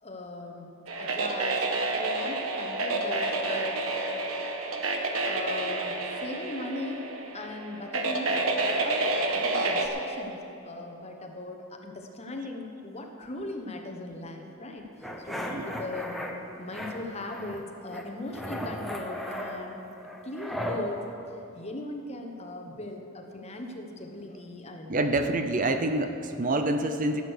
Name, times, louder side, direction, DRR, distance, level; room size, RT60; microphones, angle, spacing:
voice 1, 0.0-1.7 1.9-3.9 5.2-7.0 7.3-16.2 16.6-19.8 20.2-21.0 21.5-25.3, left 2 dB, 30° left, 3 dB, 1.2 m, -39 dB
sound 1, 0.9-9.9, right 2 dB, 75° right, 1.3 m, -29 dB
sound 2, 15.0-16.3 16.7-17.6 17.9-20.8, equal, ahead, 0.9 m, -36 dB
voice 2, 24.9-27.2, right 2 dB, 40° right, 7 dB, 0.6 m, -27 dB
16.0 x 8.2 x 6.6 m, 2.8 s
head